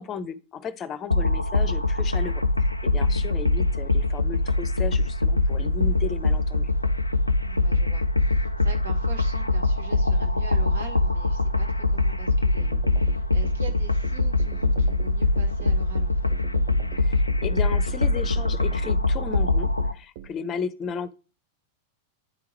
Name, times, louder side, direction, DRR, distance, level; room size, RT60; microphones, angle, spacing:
voice 1, 0.0-2.4 2.8-6.7 16.9-21.1, left 6 dB, 30° left, 15 dB, 0.6 m, -34 dB
sound 1, 1.1-19.9, left 2 dB, 85° left, 0.4 m, -23 dB
voice 2, 7.4-16.3, right 6 dB, 70° right, 4 dB, 1.4 m, -43 dB
sound 2, 12.6-20.3, right 11 dB, 50° right, 0.6 m, -41 dB
9.3 x 3.7 x 4.3 m, 0.35 s
figure-of-eight pair, 90°, 0 cm